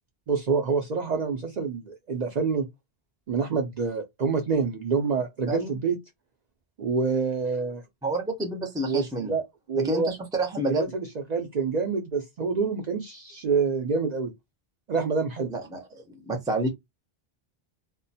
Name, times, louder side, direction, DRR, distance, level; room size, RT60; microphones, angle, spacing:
voice 1, 0.3-2.7 3.3-6.0 6.8-7.8 8.8-9.4 9.7-10.1 10.7-14.3 14.9-15.5, right 5 dB, 55° right, 0.5 m, -27 dB
voice 2, 5.5-5.8 8.0-9.3 9.8-10.9 15.5-16.7, right 1 dB, 5° right, 0.5 m, -29 dB
2.4 x 2.2 x 2.6 m
omnidirectional pair, 1.0 m